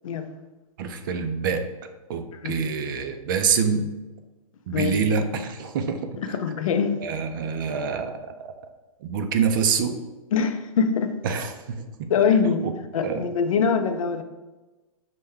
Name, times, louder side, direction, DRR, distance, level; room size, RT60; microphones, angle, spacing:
voice 1, 0.8-1.6 2.1-3.9 4.7-6.0 7.0-8.3 9.0-9.9 11.2-12.1 12.6-12.7 13.0-13.2, right 6 dB, 35° right, 7 dB, 0.4 m, -26 dB
voice 2, 6.2-7.0 10.3-11.1 12.1-12.6 12.9-14.2, left 6 dB, 70° left, 8 dB, 0.5 m, -23 dB
5.5 x 2.2 x 3.6 m, 1.1 s
hypercardioid pair, 150°, 18 cm